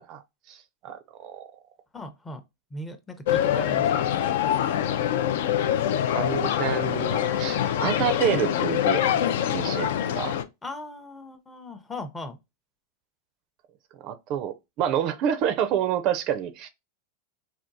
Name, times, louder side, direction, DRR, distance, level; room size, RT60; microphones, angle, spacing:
voice 1, 0.5-1.5 5.9-9.3 9.5-10.3 14.0-16.7, right 9 dB, 45° right, 0.4 m, -28 dB
voice 2, 1.9-2.4 2.7-3.9 10.6-12.4, left 1 dB, 15° left, 0.6 m, -38 dB
sound 1, 3.3-10.4, left 10 dB, 70° left, 0.4 m, -24 dB
3.5 x 2.3 x 2.6 m
hypercardioid pair, 125°, 0 cm